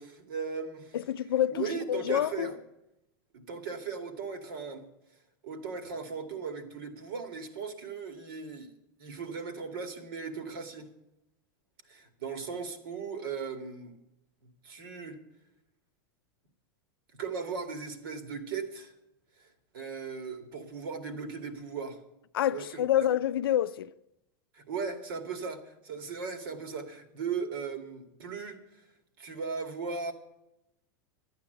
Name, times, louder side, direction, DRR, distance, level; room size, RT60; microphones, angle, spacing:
voice 1, 0.0-1.0 1.5-2.6 3.5-4.9 5.4-8.7 9.0-10.9 11.9-13.9 14.6-15.2 17.1-18.9 19.4-19.5 19.7-22.0 22.5-23.1 24.5-28.8 29.2-30.1, right 5 dB, 75° right, 2.1 m, -37 dB
voice 2, 0.9-2.5 22.3-23.9, left 11 dB, 85° left, 0.5 m, -28 dB
12.0 x 8.7 x 8.0 m
hypercardioid pair, 110°, 12 cm